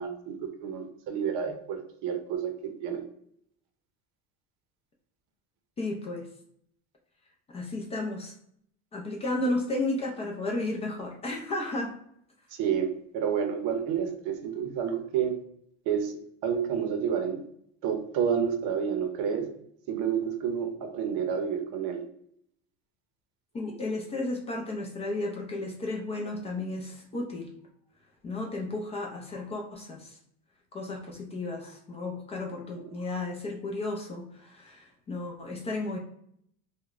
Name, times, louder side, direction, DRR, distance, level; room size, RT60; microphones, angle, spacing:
voice 1, 0.0-3.0 12.6-15.4 15.9-16.1 16.4-17.4 17.8-19.5 19.9-22.0, right 7 dB, 60° right, 6 dB, 0.6 m, -29 dB
voice 2, 5.8-6.2 7.5-8.3 8.9-11.9 23.5-27.5 28.2-30.2 30.7-36.0, left 2 dB, 20° left, 0 dB, 0.4 m, -33 dB
4.8 x 2.2 x 2.4 m, 0.69 s
cardioid pair, 155°, 33 cm